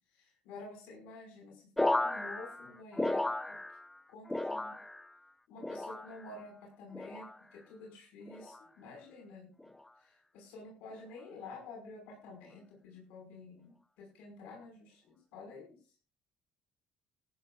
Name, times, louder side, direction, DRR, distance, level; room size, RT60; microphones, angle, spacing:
voice 1, 0.1-3.6 4.1-4.8 5.5-9.7 10.0-15.8, left 3 dB, 90° left, 1 dB, 5.5 m, -50 dB
sound 1, 1.8-4.0 4.3-5.1 5.6-6.3 6.9-7.4 8.3-8.7 9.6-9.9, left 2 dB, 5° left, 0.6 m, -35 dB
18.5 x 14.5 x 2.5 m, 0.37 s
cardioid pair, 130°, 3 cm